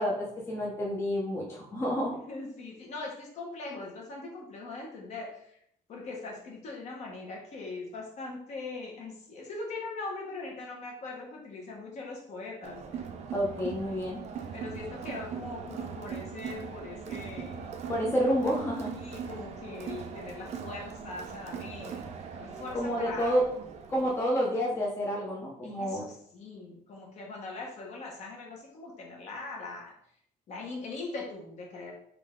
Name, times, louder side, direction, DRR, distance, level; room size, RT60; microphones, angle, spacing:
voice 1, 0.0-2.2 13.3-14.2 17.9-18.9 22.7-23.5 23.9-26.0, equal, 15° left, -4 dB, 0.7 m, -29 dB
voice 2, 2.3-5.6 5.9-13.1 14.5-17.8 18.9-23.3 25.6-29.9 30.5-31.9, left 3 dB, 50° left, -1 dB, 1.1 m, -41 dB
Crowd, 12.6-24.2, right 6 dB, 45° right, 0.5 m, -40 dB
3.7 x 3.1 x 3.7 m, 0.69 s
cardioid pair, 160°, 15 cm